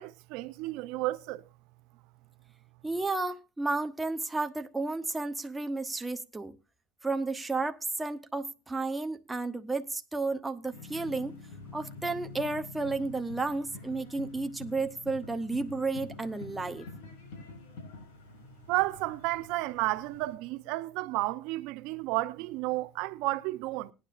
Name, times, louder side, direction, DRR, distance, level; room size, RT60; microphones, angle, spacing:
voice 1, 0.0-1.4 18.7-23.9, right 19 dB, 65° right, 0.6 m, -32 dB
voice 2, 2.8-6.6 7.0-11.4 11.7-16.9, right 3 dB, 10° right, 0.8 m, -32 dB
sound 1, 10.7-20.3, left 3 dB, 75° left, 5.2 m, -47 dB
18.5 x 10.0 x 2.5 m
supercardioid pair, 130°, 0 cm